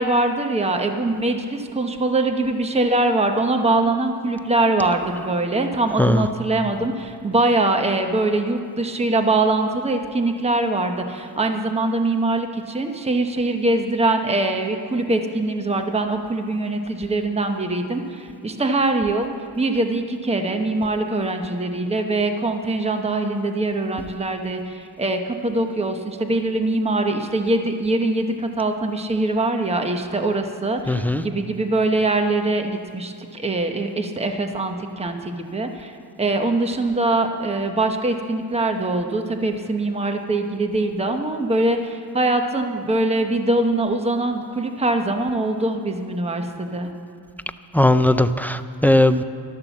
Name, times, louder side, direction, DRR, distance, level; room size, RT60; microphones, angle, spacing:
voice 1, 0.0-46.9, right 2 dB, 15° right, 5 dB, 1.0 m, -23 dB
voice 2, 30.9-31.2 47.7-49.2, left 1 dB, 5° left, 11 dB, 0.4 m, -17 dB
12.5 x 11.5 x 7.1 m, 2.2 s
cardioid pair, 105°, 44 cm